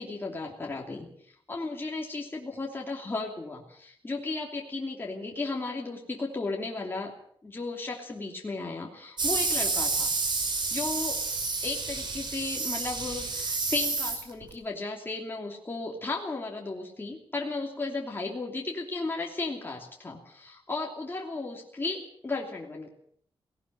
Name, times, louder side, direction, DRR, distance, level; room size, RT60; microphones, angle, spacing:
voice 1, 0.0-7.1 7.4-10.1 10.7-11.2 11.6-22.9, left 3 dB, 25° left, -1 dB, 2.9 m, -35 dB
sound 1, 9.2-14.5, right 3 dB, 55° right, 5.4 m, -29 dB
18.5 x 18.0 x 7.8 m, 0.65 s
wide cardioid pair, 125°, 9 cm